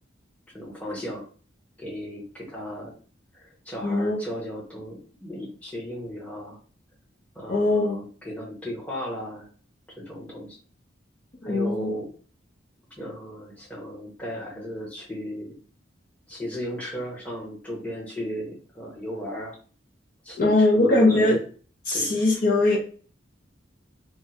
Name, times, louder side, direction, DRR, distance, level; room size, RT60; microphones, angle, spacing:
voice 1, 0.5-1.3 1.8-2.9 3.3-6.6 7.3-9.4 10.0-10.6 11.4-12.1 13.0-15.6 16.3-19.6 20.2-21.3 21.9-22.4, equal, 5° left, -5 dB, 1.0 m, -35 dB
voice 2, 3.8-4.2 7.5-8.0 11.4-11.9 20.4-21.4 21.9-22.8, left 2 dB, 45° left, -3 dB, 0.7 m, -21 dB
3.4 x 2.2 x 2.8 m, 0.40 s
head